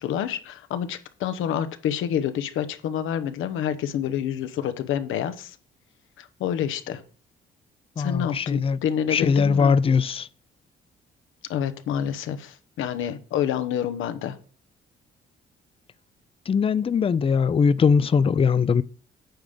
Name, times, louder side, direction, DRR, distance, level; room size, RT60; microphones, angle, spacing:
voice 1, 0.0-5.6 6.2-7.0 8.0-9.7 11.5-14.4, left 9 dB, 85° left, 0.9 m, -28 dB
voice 2, 8.0-8.8 9.1-10.3 16.5-18.8, left 6 dB, 30° left, 0.4 m, -21 dB
9.2 x 3.6 x 6.7 m
cardioid pair, 90°, 20 cm